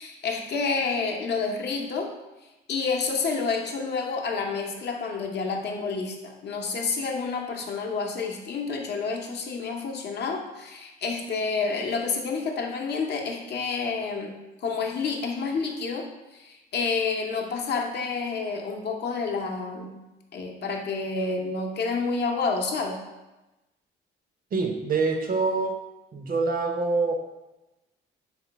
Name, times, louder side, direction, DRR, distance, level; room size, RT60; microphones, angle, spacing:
voice 1, 0.0-2.1 2.7-14.3 14.6-16.1 16.3-20.0 20.3-23.0, left 4 dB, 55° left, 1 dB, 0.7 m, -29 dB
voice 2, 24.5-25.8 26.1-27.2, right 4 dB, 45° right, 4 dB, 0.6 m, -25 dB
4.2 x 2.2 x 4.0 m, 1.0 s
cardioid pair, 90°, 20 cm